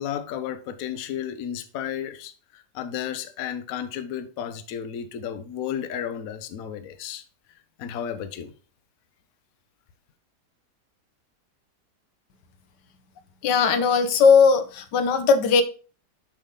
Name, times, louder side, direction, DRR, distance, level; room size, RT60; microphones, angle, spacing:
voice 1, 0.0-7.2 7.8-8.5, left 9 dB, 65° left, 1.0 m, -33 dB
voice 2, 13.4-15.6, left 5 dB, 85° left, 1.4 m, -18 dB
7.3 x 3.6 x 5.2 m
omnidirectional pair, 1.8 m